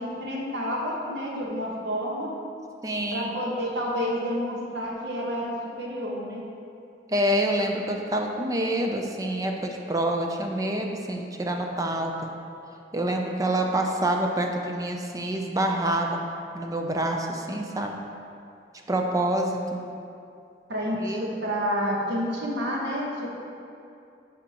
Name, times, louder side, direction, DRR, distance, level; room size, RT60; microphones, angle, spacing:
voice 1, 0.0-2.3 3.1-6.4 20.7-23.3, equal, 70° right, -3 dB, 1.3 m, -29 dB
voice 2, 2.8-3.3 7.1-12.3 12.9-16.2 16.5-18.0 18.9-19.8 21.0-21.3, right 1 dB, 20° right, 2 dB, 0.5 m, -27 dB
11.0 x 4.9 x 3.0 m, 2.6 s
head